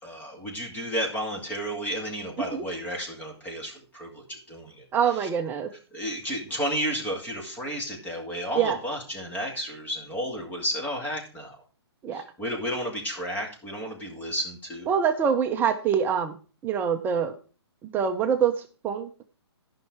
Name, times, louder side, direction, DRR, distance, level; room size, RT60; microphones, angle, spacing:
voice 1, 0.0-4.8 5.2-5.3 5.9-11.6 12.1-14.9, equal, 10° left, 0 dB, 2.1 m, -32 dB
voice 2, 4.9-5.7 8.5-8.8 12.0-12.2 14.9-16.3 16.6-17.3 17.9-19.2, right 7 dB, 15° right, 7 dB, 0.6 m, -25 dB
12.5 x 5.7 x 4.7 m, 0.36 s
hypercardioid pair, 150°, 14 cm